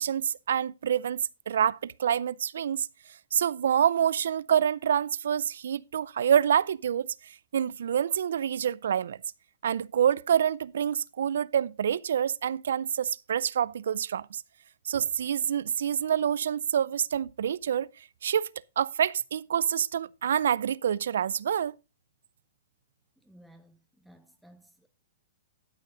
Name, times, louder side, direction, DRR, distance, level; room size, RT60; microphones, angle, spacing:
voice 1, 0.0-2.9 3.3-7.1 7.5-9.2 9.6-14.4 14.9-17.9 18.2-21.7, right 9 dB, 75° right, 0.4 m, -27 dB
voice 2, 23.2-24.9, right 1 dB, ahead, 0.9 m, -56 dB
12.5 x 6.4 x 3.8 m
hypercardioid pair, 130°, 0 cm